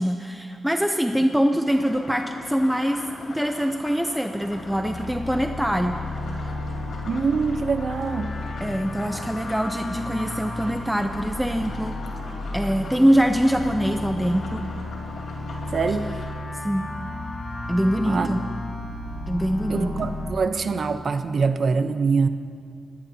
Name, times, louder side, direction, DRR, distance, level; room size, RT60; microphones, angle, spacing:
voice 1, 0.0-6.0 8.6-12.0 12.5-14.6 16.6-16.9 17.7-18.4 19.3-20.1, equal, 5° right, 5 dB, 0.7 m, -23 dB
sound 1, 1.7-16.3, left 2 dB, 75° left, 3.8 m, -41 dB
sound 2, 4.4-20.3, left 2 dB, 55° left, 2.2 m, -33 dB
voice 2, 7.0-8.3 15.7-16.2 18.1-18.4 19.7-22.3, right 5 dB, 55° right, 9 dB, 0.8 m, -24 dB
26.0 x 17.0 x 2.9 m, 2.1 s
cardioid pair, 95°, 0 cm